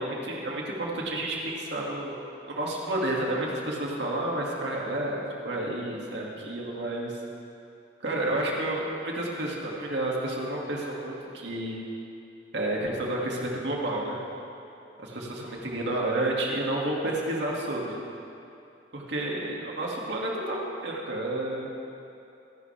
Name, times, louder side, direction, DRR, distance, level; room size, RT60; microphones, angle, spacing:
voice 1, 0.0-2.2 2.5-7.1 8.0-11.8 12.5-14.2 15.0-18.0 18.9-21.7, right 1 dB, 75° right, -3 dB, 2.4 m, -30 dB
26.5 x 11.5 x 3.5 m, 2.7 s
head